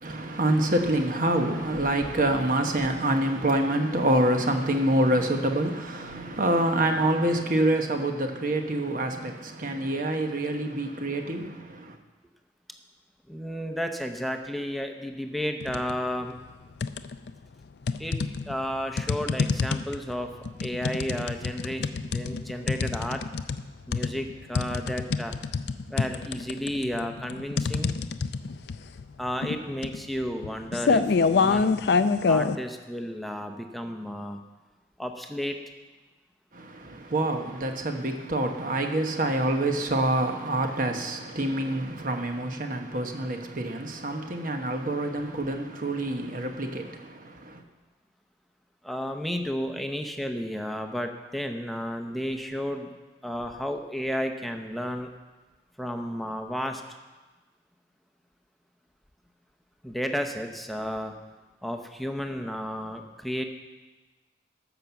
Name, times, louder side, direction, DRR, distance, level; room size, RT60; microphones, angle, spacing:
voice 1, 0.0-12.0 36.5-47.6, right 1 dB, 50° right, 1.1 m, -26 dB
voice 2, 13.3-16.3 18.0-18.2 18.5-20.3 20.6-23.2 23.9-25.3 25.9-28.0 29.2-31.1 31.3-31.7 32.3-34.4 35.0-35.6 48.8-52.9 53.2-55.1 55.8-56.8 59.8-61.1 61.6-63.4, equal, ahead, 0.8 m, -32 dB
sound 1, 15.6-16.0 16.4-17.3 17.9-32.6, left 4 dB, 65° left, 0.5 m, -27 dB
14.5 x 6.0 x 7.0 m
head